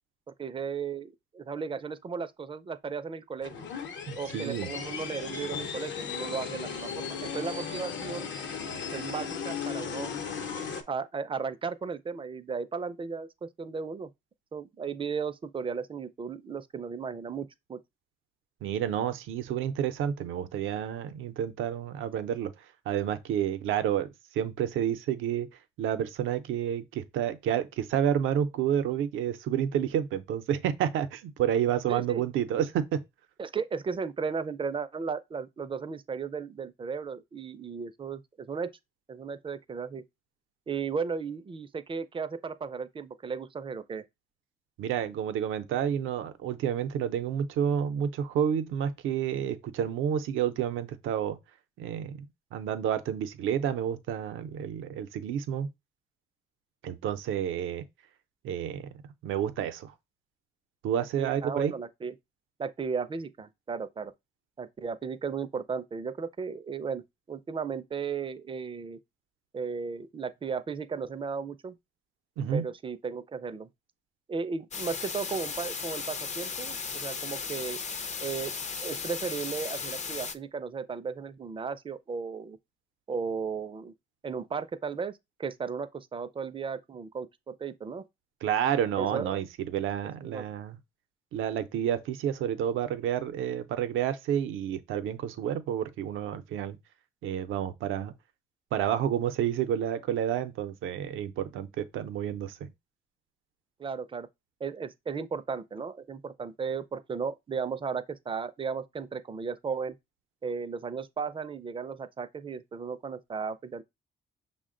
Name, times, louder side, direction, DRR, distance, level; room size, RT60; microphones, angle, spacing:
voice 1, 0.4-3.7 4.2-6.9 7.2-8.3 8.9-10.1 10.9-14.1 14.5-17.8 31.9-32.2 33.4-38.7 39.1-40.0 40.7-44.0 61.2-62.1 62.6-64.1 64.6-69.0 69.5-71.8 72.5-73.7 74.3-77.8 78.2-78.5 78.8-82.6 83.1-83.9 84.2-88.1 89.0-89.4 90.2-90.5 103.8-104.3 104.6-110.0 110.4-113.8, right 5 dB, 25° right, 0.4 m, -35 dB
sound 1, 3.4-10.8, left 6 dB, 65° left, 0.8 m, -36 dB
voice 2, 4.1-4.7 18.6-22.5 22.9-24.1 24.3-25.5 25.8-33.0 44.8-51.4 51.8-52.2 52.5-55.7 56.8-57.8 58.4-59.9 60.8-61.7 72.4-72.6 88.4-90.8 91.3-96.8 97.2-98.1 98.7-102.7, right 9 dB, 85° right, 0.6 m, -30 dB
sound 2, 74.7-80.3, left 5 dB, 35° left, 0.5 m, -36 dB
5.7 x 2.1 x 3.7 m
cardioid pair, 90°, 20 cm